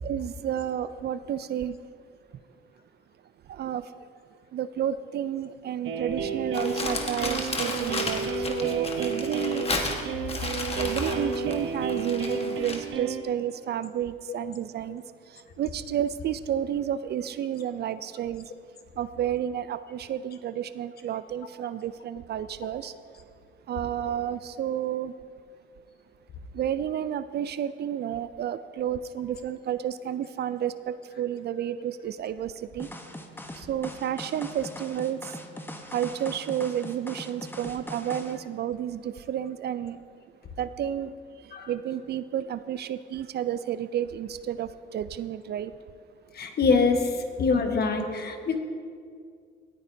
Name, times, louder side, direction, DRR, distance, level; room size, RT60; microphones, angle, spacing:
voice 1, 0.0-1.8 3.5-4.1 4.5-9.7 10.8-18.5 19.0-22.9 23.7-25.1 26.5-32.9 33.5-35.4 35.9-40.0 40.6-45.7, right 10 dB, 55° right, 14 dB, 0.4 m, -31 dB
sound 1, 5.8-13.2, right 4 dB, 75° right, 0.9 m, -32 dB
Crumpling crinkling, 6.5-12.9, left 3 dB, 30° left, 1.4 m, -33 dB
sound 2, 32.8-38.4, left 1 dB, 10° left, 0.9 m, -41 dB
voice 2, 46.3-48.6, left 4 dB, 55° left, 5 dB, 1.2 m, -25 dB
17.0 x 9.5 x 2.7 m, 2.2 s
cardioid pair, 90°, 20 cm